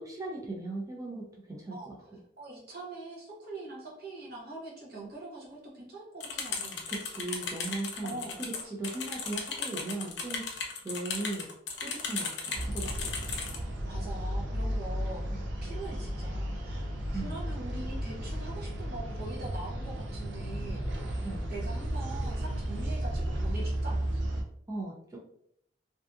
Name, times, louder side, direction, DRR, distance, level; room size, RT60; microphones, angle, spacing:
voice 1, 0.0-2.0 6.9-10.5 10.8-11.5 11.8-13.3 17.1-17.3 21.2-21.4 24.7-25.2, right 2 dB, 20° right, -2 dB, 0.4 m, -38 dB
voice 2, 2.4-6.9 8.0-8.7 13.5-15.2 15.6-20.8 21.2-24.0, right 2 dB, 60° right, -4 dB, 0.8 m, -43 dB
sound 1, 6.2-13.6, left 5 dB, 80° left, 0.6 m, -36 dB
sound 2, 12.5-24.4, right 1 dB, 90° right, 0.5 m, -34 dB
2.6 x 2.4 x 2.3 m, 0.70 s
head